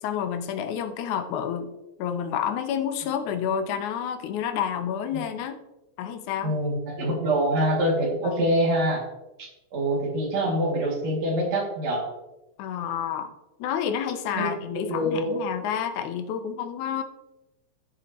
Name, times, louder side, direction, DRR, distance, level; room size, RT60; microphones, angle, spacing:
voice 1, 0.0-1.7 2.0-5.6 6.0-6.6 8.2-8.5 12.6-13.3 13.6-17.0, left 8 dB, 80° left, 8 dB, 2.2 m, -29 dB
voice 2, 6.4-9.0 9.4-12.1 14.4-14.6 14.9-15.4, right 1 dB, 60° right, -3 dB, 3.6 m, -25 dB
13.5 x 6.6 x 3.0 m, 1.0 s
omnidirectional pair, 3.4 m